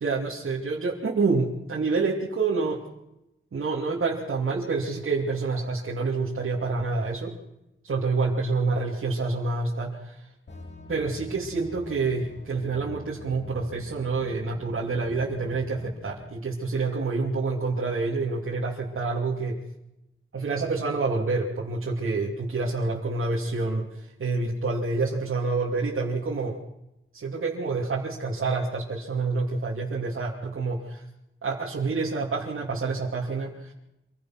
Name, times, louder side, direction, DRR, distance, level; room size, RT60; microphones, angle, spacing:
voice 1, 0.0-2.8 3.5-7.3 7.8-9.9 10.9-19.6 20.3-26.6 27.1-31.0 31.4-33.7, right 3 dB, 75° right, -3 dB, 3.0 m, -27 dB
sound 1, 10.5-16.3, left 3 dB, 55° left, 3.3 m, -45 dB
26.5 x 21.0 x 6.1 m, 0.89 s
wide cardioid pair, 110°, 21 cm